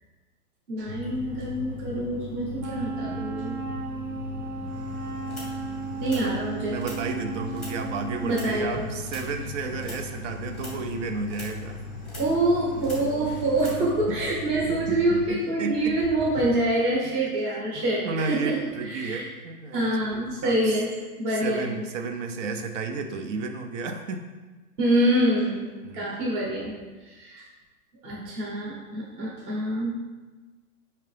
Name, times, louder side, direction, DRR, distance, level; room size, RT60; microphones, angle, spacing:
voice 1, 0.7-3.6 6.0-6.8 8.2-8.9 12.1-19.3 19.7-20.9 21.2-21.7 24.8-26.7 27.0-27.4 28.0-29.9, right 1 dB, 30° right, -5 dB, 0.9 m, -26 dB
sound 1, 0.9-15.3, left 3 dB, 25° left, 0.4 m, -38 dB
Wind instrument woodwind instrument, 2.6-8.7, right 4 dB, 90° right, 0.8 m, -35 dB
sound 2, 4.6-13.8, left 1 dB, ahead, 0.8 m, -46 dB
voice 2, 4.6-5.0 6.0-11.8 14.7-14.8 15.1-16.0 18.0-20.8 21.3-24.2 25.8-26.2, right 4 dB, 55° right, 6 dB, 0.5 m, -33 dB
4.8 x 2.8 x 3.3 m, 1.3 s
hypercardioid pair, 150°, 45 cm